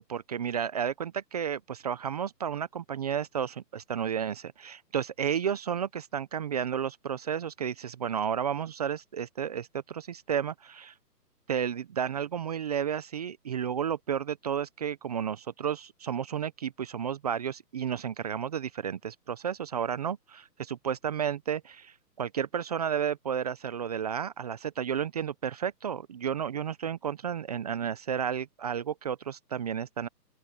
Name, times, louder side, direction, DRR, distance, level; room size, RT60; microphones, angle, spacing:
voice 1, 0.0-10.9 11.5-30.1, right 8 dB, 25° right, 0.7 m, -32 dB
open air
hypercardioid pair, 150°, 49 cm